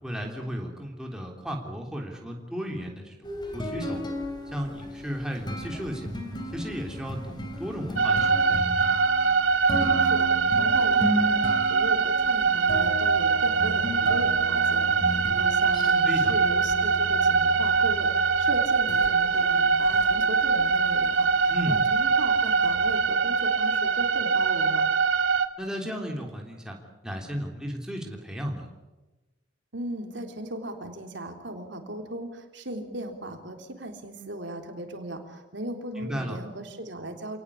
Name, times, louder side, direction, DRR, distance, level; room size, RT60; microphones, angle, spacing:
voice 1, 0.0-4.0 4.5-6.1 6.5-8.7 16.0-16.3 21.5-21.8 25.6-26.8 27.0-28.7 35.9-36.4, equal, 5° right, 0 dB, 3.4 m, -34 dB
sound 1, 3.2-23.0, equal, 20° left, 3.6 m, -35 dB
sound 2, 8.0-25.5, right 5 dB, 90° right, 1.7 m, -23 dB
voice 2, 9.7-24.8 29.7-37.4, right 1 dB, 65° right, 4 dB, 3.7 m, -37 dB
28.5 x 19.0 x 8.6 m, 1.1 s
head